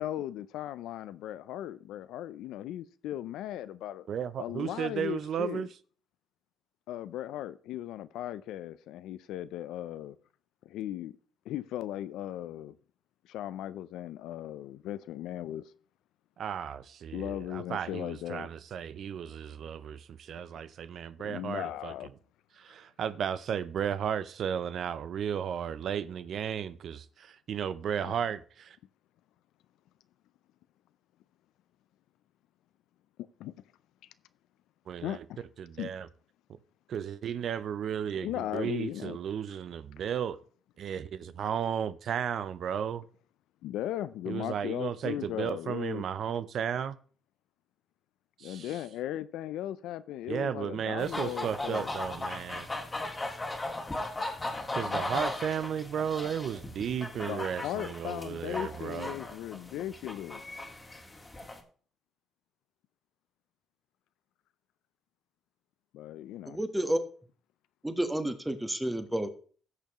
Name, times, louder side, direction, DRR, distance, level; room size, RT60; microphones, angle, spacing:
voice 1, 0.0-4.1 4.4-5.7 6.9-10.2 10.6-11.1 11.5-12.8 13.2-15.7 17.1-18.5 21.2-22.1 28.0-28.1 33.4-33.5 35.0-35.4 35.8-35.9 38.2-39.2 43.6-46.0 48.4-51.9 54.4-55.0 57.2-60.4 65.9-66.6, left 12 dB, 90° left, 0.4 m, -37 dB
voice 2, 4.1-5.7 16.4-21.9 22.6-28.8 34.9-35.2 35.6-36.1 36.9-40.4 40.8-43.0 44.3-47.0 48.4-48.7 50.3-52.7 54.7-59.1, right 8 dB, 65° right, 0.5 m, -34 dB
sound 1, 51.0-61.6, left 2 dB, 20° left, 1.9 m, -37 dB
voice 3, 66.5-67.0 67.8-69.3, right 1 dB, 10° right, 1.3 m, -30 dB
15.5 x 6.8 x 3.0 m
cardioid pair, 90°, 0 cm